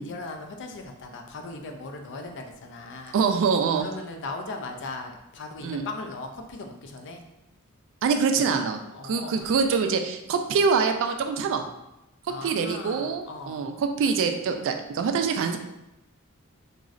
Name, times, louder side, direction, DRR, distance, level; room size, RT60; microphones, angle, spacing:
voice 1, 0.0-3.2 3.7-7.3 8.9-9.6 12.3-13.7, left 3 dB, 55° left, 4 dB, 0.4 m, -38 dB
voice 2, 3.1-3.9 5.6-5.8 8.0-11.6 12.4-13.7 14.0-15.6, right 5 dB, 60° right, 5 dB, 0.3 m, -25 dB
3.8 x 2.0 x 2.4 m, 0.89 s
head